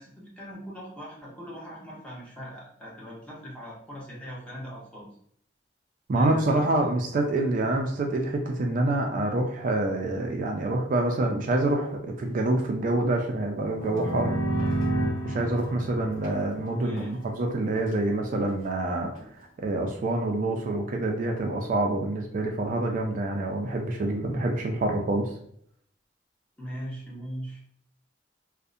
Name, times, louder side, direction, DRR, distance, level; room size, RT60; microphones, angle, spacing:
voice 1, 0.0-5.1 6.1-6.8 16.8-17.1 26.6-27.6, equal, 5° left, -6 dB, 0.8 m, -40 dB
voice 2, 6.1-14.3 15.2-19.1 19.6-25.3, right 2 dB, 50° right, 2 dB, 0.3 m, -26 dB
sound 1, 13.7-17.4, right 1 dB, 85° left, 0.7 m, -30 dB
sound 2, 13.8-14.1 14.6-14.9 15.4-15.7 16.1-17.2 17.6-18.7 19.1-19.5, equal, 50° left, 1.0 m, -47 dB
2.6 x 2.0 x 2.4 m, 0.67 s
head